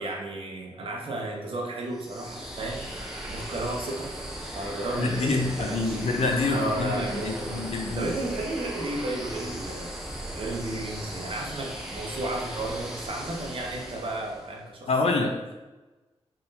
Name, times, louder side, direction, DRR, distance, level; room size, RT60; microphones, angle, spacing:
voice 1, 0.0-2.9 3.3-4.1 4.5-6.0 6.5-7.7 7.9-9.9 10.3-15.3, right 2 dB, 55° right, 0 dB, 0.8 m, -33 dB
sound 1, 1.9-14.6, right 1 dB, 5° right, 0.7 m, -37 dB
voice 2, 4.9-8.1 14.9-15.5, left 3 dB, 70° left, 3 dB, 0.6 m, -27 dB
4.3 x 3.7 x 2.7 m, 1.1 s
wide cardioid pair, 175°, 11 cm